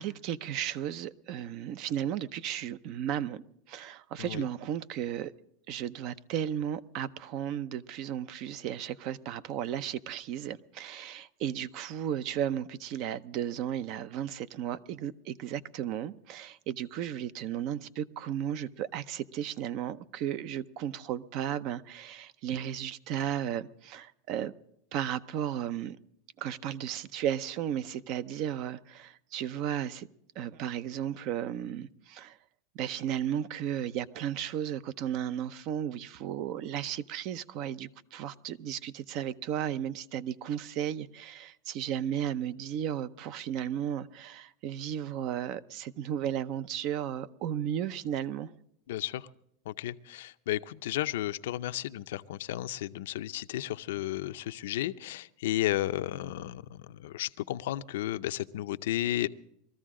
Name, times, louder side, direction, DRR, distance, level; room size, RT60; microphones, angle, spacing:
voice 1, 0.0-5.3 5.7-24.5 24.9-26.0 26.4-30.1 30.4-32.4 32.7-48.5, right 10 dB, 50° right, 0.6 m, -34 dB
voice 2, 48.9-49.2 49.7-59.3, left 14 dB, 80° left, 0.5 m, -33 dB
21.0 x 14.0 x 3.7 m
supercardioid pair, 140°, 0 cm